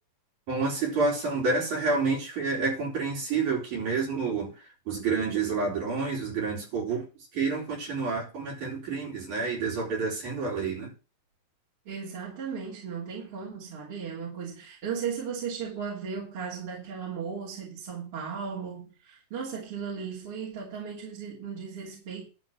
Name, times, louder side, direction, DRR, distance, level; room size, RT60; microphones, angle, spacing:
voice 1, 0.5-7.1 7.3-10.9, right 4 dB, 65° right, 5.8 m, -29 dB
voice 2, 11.9-22.3, right 6 dB, 45° right, 3.7 m, -36 dB
11.5 x 4.1 x 7.9 m
omnidirectional pair, 3.7 m